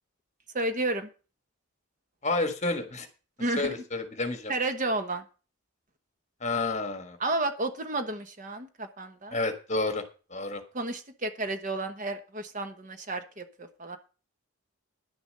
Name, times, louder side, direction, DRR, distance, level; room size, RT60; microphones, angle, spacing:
voice 1, 0.5-1.1 3.4-3.7 4.5-5.2 7.2-9.4 10.7-14.0, right 2 dB, 35° right, 8 dB, 1.0 m, -31 dB
voice 2, 2.2-3.1 3.6-4.5 6.4-7.2 9.3-10.0 10.3-10.6, left 2 dB, 30° left, 7 dB, 1.5 m, -30 dB
11.0 x 6.9 x 6.5 m, 0.35 s
head